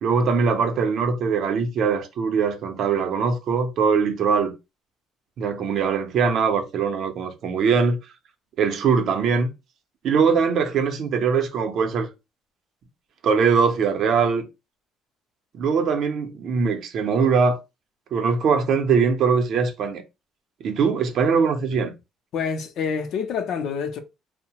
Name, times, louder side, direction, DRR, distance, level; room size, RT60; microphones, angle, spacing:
voice 1, 0.0-4.5 5.4-8.0 8.6-9.5 10.0-12.1 13.2-14.5 15.5-17.6 18.1-20.0 20.6-21.9, right 5 dB, 60° right, 0.6 m, -21 dB
voice 2, 22.3-24.0, left 6 dB, 65° left, 0.5 m, -27 dB
2.7 x 2.0 x 2.9 m
cardioid pair, 125°, 0 cm